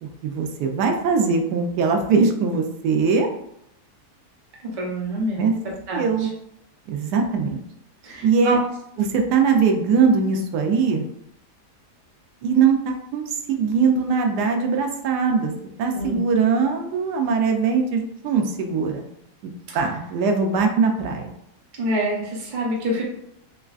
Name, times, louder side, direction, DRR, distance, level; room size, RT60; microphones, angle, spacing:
voice 1, 0.0-3.3 5.4-5.5 5.9-6.3 6.9-7.6 8.2-8.6 9.0-11.0 12.4-15.5 15.8-19.0 19.7-21.3, right 5 dB, 85° right, 3 dB, 1.2 m, -21 dB
voice 2, 4.6-5.5 5.9-6.3 8.0-8.6 9.0-9.1 15.9-16.2 21.8-23.0, right 1 dB, 40° right, -3 dB, 0.7 m, -26 dB
3.6 x 3.1 x 2.4 m, 0.76 s
omnidirectional pair, 1.7 m